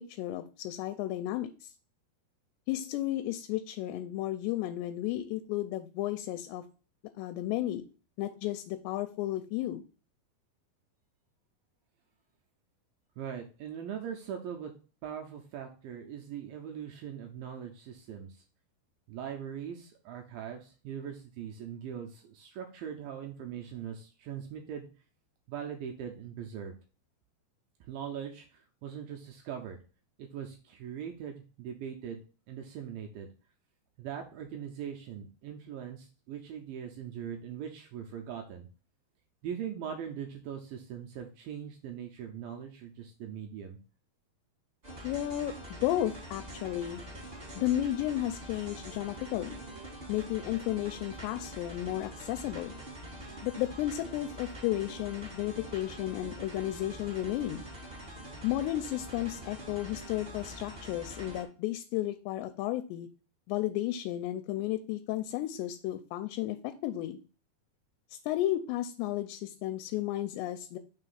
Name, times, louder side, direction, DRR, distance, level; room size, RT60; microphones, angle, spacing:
voice 1, 0.1-1.7 2.7-6.6 7.2-7.8 8.2-9.8 45.0-47.0 47.6-49.6 50.1-52.7 53.4-57.6 58.4-63.1 63.5-67.2 68.1-70.8, left 14 dB, 85° left, 8 dB, 2.7 m, -33 dB
voice 2, 13.2-14.7 15.0-18.4 19.1-24.9 25.5-26.7 27.9-29.8 30.2-32.2 32.5-33.3 34.0-38.7 39.4-43.8, right 8 dB, 85° right, 3 dB, 2.0 m, -41 dB
sound 1, 44.8-61.4, right 1 dB, 45° right, 0.7 m, -45 dB
5.9 x 3.3 x 5.5 m, 0.36 s
omnidirectional pair, 4.8 m